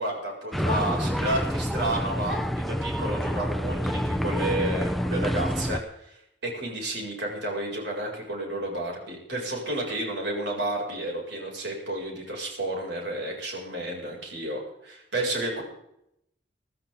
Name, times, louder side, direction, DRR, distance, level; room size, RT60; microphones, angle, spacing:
voice 1, 0.0-6.2 6.4-15.6, right 1 dB, 75° right, -1 dB, 7.3 m, -31 dB
sound 1, 0.5-5.8, equal, ahead, 0.6 m, -28 dB
24.0 x 14.0 x 4.1 m, 0.78 s
head